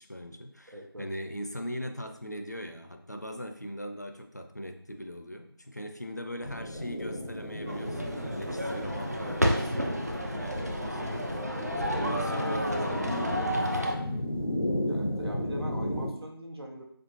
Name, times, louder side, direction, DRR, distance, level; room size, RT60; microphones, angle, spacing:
voice 1, 0.0-14.1, equal, 45° left, 5 dB, 0.4 m, -40 dB
voice 2, 0.7-1.1 10.5-10.7 11.5-11.6 14.9-16.8, equal, 85° right, 1 dB, 0.9 m, -41 dB
sound 1, 6.4-16.1, left 1 dB, 90° left, 0.7 m, -34 dB
sound 2, 7.7-13.9, equal, 40° right, 0.4 m, -31 dB
4.2 x 2.8 x 3.0 m, 0.68 s
figure-of-eight pair, 175°, 13 cm